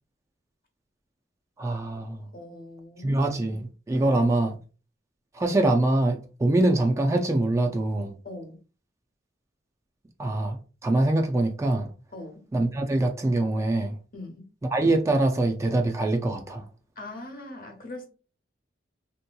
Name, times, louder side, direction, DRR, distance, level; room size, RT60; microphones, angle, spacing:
voice 1, 1.6-2.3 3.0-4.5 5.3-8.2 10.2-11.9 12.5-14.0 14.7-16.7, right 2 dB, 15° right, 0.3 m, -24 dB
voice 2, 2.3-3.3 8.2-8.6 12.1-12.4 14.1-14.5 17.0-18.1, left 2 dB, 50° left, 0.9 m, -41 dB
3.4 x 2.8 x 2.2 m
head